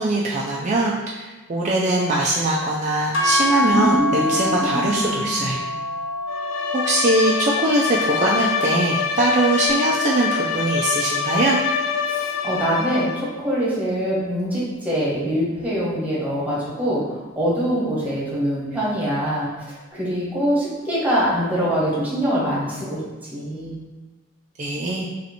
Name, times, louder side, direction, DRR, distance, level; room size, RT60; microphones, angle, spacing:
voice 1, 0.0-5.6 6.7-11.6 24.6-25.1, right 2 dB, 40° right, -4 dB, 0.4 m, -21 dB
sound 1, 3.1-11.4, left 2 dB, 65° left, 0.8 m, -28 dB
voice 2, 3.6-5.8 12.1-23.0 23.3-23.8, equal, 10° right, -7 dB, 1.2 m, -24 dB
Bowed string instrument, 6.3-13.4, left 6 dB, 85° left, 0.4 m, -25 dB
3.1 x 2.9 x 4.0 m, 1.3 s
head